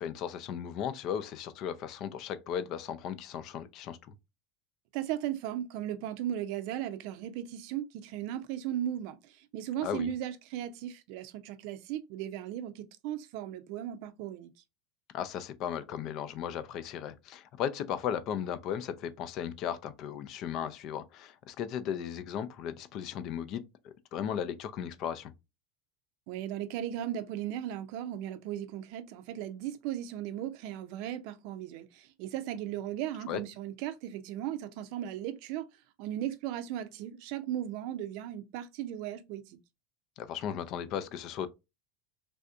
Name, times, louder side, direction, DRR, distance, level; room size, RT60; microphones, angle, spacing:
voice 1, 0.0-4.1 9.8-10.1 15.1-25.3 33.3-33.4 40.2-41.5, left 9 dB, 50° left, 0.4 m, -36 dB
voice 2, 4.9-14.5 26.3-35.7 36.0-39.6, right 11 dB, 65° right, 0.5 m, -37 dB
3.3 x 2.6 x 2.4 m
hypercardioid pair, 100°, 0 cm